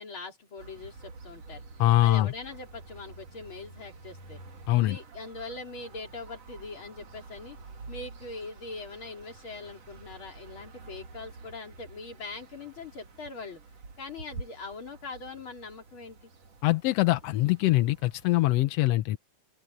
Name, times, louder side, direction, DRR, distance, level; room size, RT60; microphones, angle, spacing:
voice 1, 0.0-1.6 2.0-4.4 4.7-7.6 7.9-13.6 14.0-16.2, left 3 dB, 45° left, 4.1 m, -42 dB
sound 1, 0.6-18.5, right 3 dB, 55° right, 3.7 m, -48 dB
voice 2, 1.8-2.3 4.7-5.0 16.6-19.2, left 16 dB, 75° left, 1.6 m, -23 dB
open air
omnidirectional pair, 3.3 m